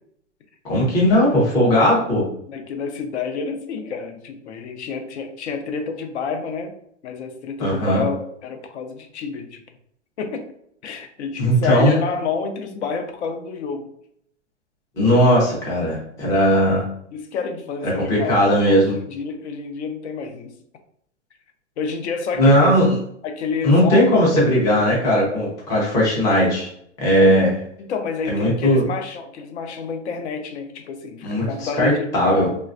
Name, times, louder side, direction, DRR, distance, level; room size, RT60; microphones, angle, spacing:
voice 1, 0.7-2.2 7.6-8.0 11.4-11.9 15.0-16.8 17.8-18.9 22.4-22.8 23.6-26.7 27.0-27.5 28.3-28.9 31.2-32.5, equal, 10° left, -5 dB, 0.4 m, -17 dB
voice 2, 2.5-6.7 7.0-9.6 10.2-10.5 10.8-13.9 17.1-20.6 21.8-22.6 23.2-24.1 27.2-27.4 27.8-32.6, left 5 dB, 65° left, 6 dB, 0.6 m, -29 dB
3.2 x 2.3 x 2.4 m, 0.69 s
hypercardioid pair, 145°, 37 cm